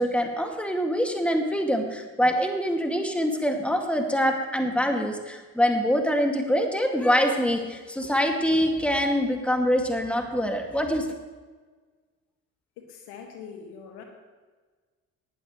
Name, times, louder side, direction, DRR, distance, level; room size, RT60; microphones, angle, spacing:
voice 1, 0.0-11.1, equal, 5° left, 3 dB, 2.3 m, -24 dB
voice 2, 12.8-14.0, left 6 dB, 70° left, 3 dB, 1.9 m, -43 dB
18.5 x 12.0 x 3.2 m, 1.4 s
hypercardioid pair, 40°, 41 cm